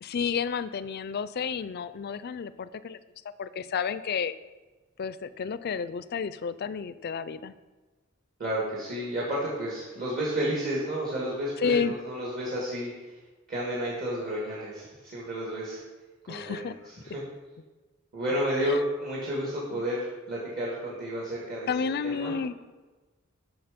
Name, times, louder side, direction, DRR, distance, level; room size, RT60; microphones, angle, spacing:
voice 1, 0.0-3.0 3.4-4.3 5.0-7.5 11.6-11.9 16.3-16.7 18.6-18.8 19.7-19.8 21.7-22.5, left 6 dB, 50° left, 15 dB, 0.4 m, -31 dB
voice 2, 8.4-13.1 13.5-15.8 16.2-17.2 18.1-21.7 22.0-22.3, equal, 45° right, -6 dB, 1.8 m, -31 dB
8.8 x 5.7 x 5.1 m, 1.2 s
head